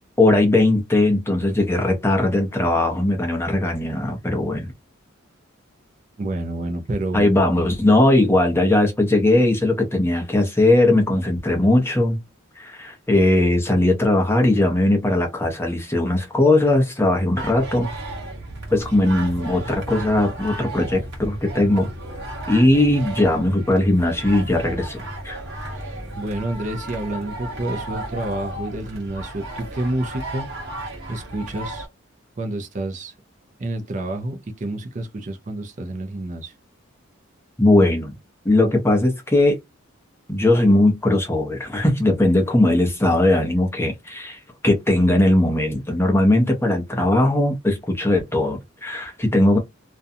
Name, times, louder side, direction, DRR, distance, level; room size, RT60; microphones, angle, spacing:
voice 1, 0.2-4.7 7.1-12.2 12.6-17.9 18.7-21.9 22.5-25.4 37.6-38.1 38.4-39.6 40.3-49.6, left 1 dB, 10° left, 0.6 m, -19 dB
voice 2, 6.2-7.3 25.8-30.5 31.1-31.9 32.4-33.1 33.6-36.5, right 1 dB, 35° right, 0.4 m, -29 dB
sound 1, 17.4-31.9, right 1 dB, 50° right, 0.9 m, -34 dB
2.5 x 2.2 x 2.6 m
head